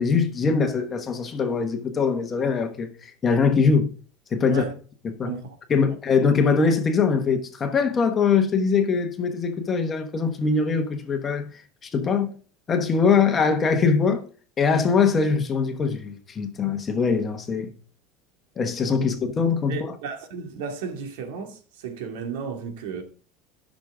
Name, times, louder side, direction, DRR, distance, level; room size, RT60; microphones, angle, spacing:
voice 1, 0.0-3.9 4.3-4.6 5.0-5.4 5.7-12.3 12.7-14.2 14.6-17.7 18.6-19.8, left 5 dB, 20° left, 1.1 m, -22 dB
voice 2, 19.7-23.0, right 5 dB, 80° right, 2.1 m, -33 dB
12.0 x 6.3 x 3.8 m
cardioid pair, 175°, 0 cm